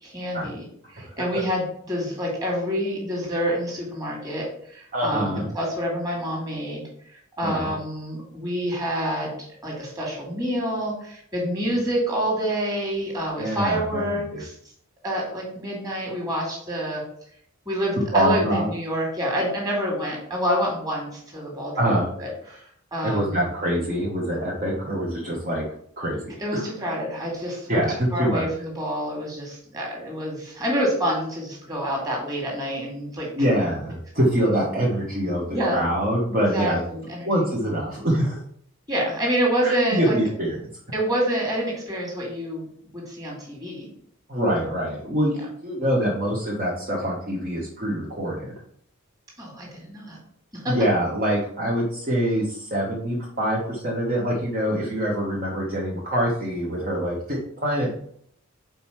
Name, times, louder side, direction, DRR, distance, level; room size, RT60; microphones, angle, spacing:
voice 1, 0.0-0.7 0.9-14.6 15.0-17.0 17.7-22.3 22.9-23.4 26.4-27.8 28.1-33.3 34.4-34.5 35.5-35.8 36.5-37.5 38.9-40.2 40.9-42.7 42.9-43.9 49.4-50.2 50.5-50.8, equal, 15° right, -2 dB, 2.2 m, -27 dB
voice 2, 4.9-5.4 7.4-7.7 11.7-11.8 13.4-14.0 14.3-14.4 18.1-18.6 21.7-22.1 23.0-25.6 26.0-26.7 27.7-28.4 33.4-36.8 37.2-38.4 39.6-40.7 44.3-48.5 50.7-57.9, equal, 40° right, -4 dB, 1.3 m, -25 dB
5.4 x 4.4 x 5.7 m, 0.66 s
head